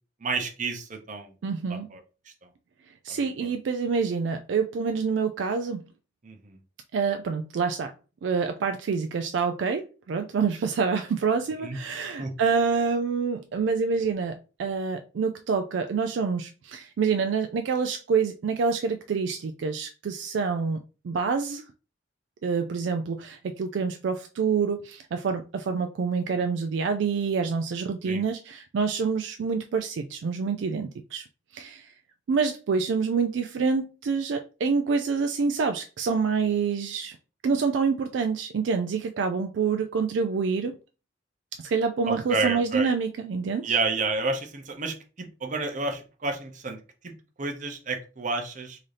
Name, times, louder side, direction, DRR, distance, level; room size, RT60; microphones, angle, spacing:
voice 1, 0.2-1.3 1.9-2.0 3.1-3.3 6.2-6.6 11.6-11.8 12.2-12.3 28.0-28.2 42.1-42.9 43.6-46.8 47.0-47.1 47.4-48.8, right 3 dB, 45° right, 0.8 m, -30 dB
voice 2, 1.4-1.9 3.0-5.8 6.9-7.9 8.2-20.8 21.0-21.6 22.4-31.2 31.5-31.9 32.3-37.2 37.4-40.8 41.6-43.7, right 5 dB, 70° right, 0.3 m, -27 dB
3.8 x 2.7 x 3.2 m
head